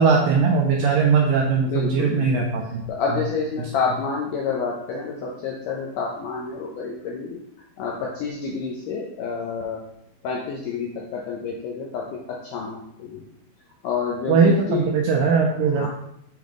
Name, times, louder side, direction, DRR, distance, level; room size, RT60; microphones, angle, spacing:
voice 1, 0.0-2.9 14.3-15.9, right 5 dB, 85° right, 1 dB, 2.0 m, -19 dB
voice 2, 1.7-7.4 7.8-9.9 10.2-13.3 13.8-14.9 15.6-15.9, left 5 dB, 80° left, -1 dB, 1.9 m, -29 dB
7.5 x 3.6 x 3.6 m, 0.76 s
omnidirectional pair, 4.5 m